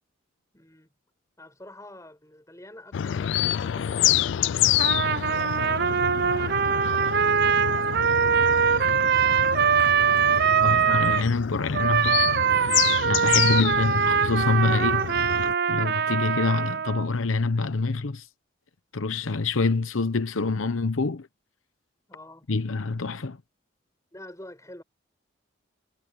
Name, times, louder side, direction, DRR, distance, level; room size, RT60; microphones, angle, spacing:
voice 1, 0.5-0.9 1.4-4.0 4.7-5.9 6.6-7.1 7.7-9.8 22.1-22.5 24.1-24.8, left 1 dB, 15° left, 7.5 m, -48 dB
sound 1, 2.9-15.5, left 11 dB, 65° left, 0.3 m, -28 dB
Trumpet, 4.8-11.3 11.7-17.1, right 7 dB, 50° right, 0.5 m, -23 dB
voice 2, 10.6-15.0 15.7-18.3 18.9-21.3 22.5-23.4, left 3 dB, 80° left, 0.9 m, -26 dB
head